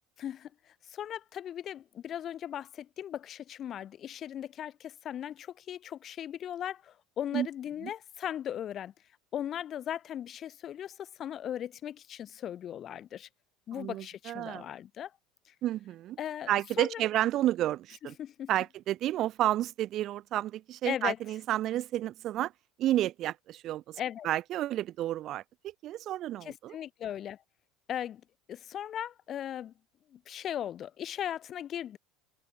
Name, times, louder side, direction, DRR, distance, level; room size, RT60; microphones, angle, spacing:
voice 1, 0.2-8.9 9.3-13.3 13.7-15.1 15.5-15.6 16.2-16.5 16.8-17.0 18.2-18.5 20.9-21.2 24.0-24.3 26.4-27.4 27.9-28.2 28.5-29.7 30.1-32.0, left 10 dB, 45° left, 0.5 m, -38 dB
voice 2, 13.7-14.7 15.6-16.2 16.5-18.1 18.5-22.5 22.8-24.0 24.2-26.7, right 13 dB, 50° right, 0.5 m, -31 dB
supercardioid pair, 90°, 0 cm